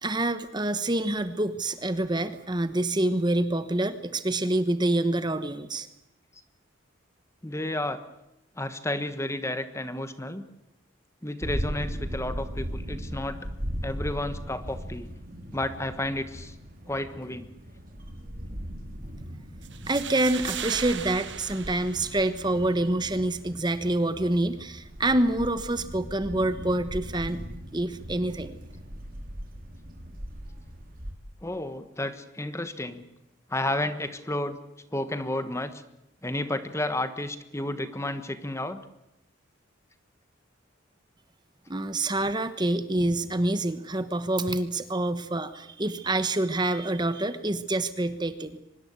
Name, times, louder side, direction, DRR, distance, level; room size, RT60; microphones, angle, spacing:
voice 1, 0.0-5.9 19.9-27.4 27.7-28.6 41.7-48.6, right 1 dB, 20° right, 11 dB, 1.1 m, -27 dB
voice 2, 7.4-8.0 8.6-10.4 11.2-13.4 13.8-15.1 15.5-16.5 16.9-17.5 31.4-33.0 33.5-34.6 34.9-35.8 36.2-38.8, left 1 dB, 15° left, 11 dB, 1.3 m, -31 dB
sound 1, 11.4-31.1, equal, 45° right, 3.8 m, -38 dB
sound 2, 19.6-22.6, right 9 dB, 60° right, 1.7 m, -38 dB
24.5 x 20.5 x 8.3 m, 0.87 s
head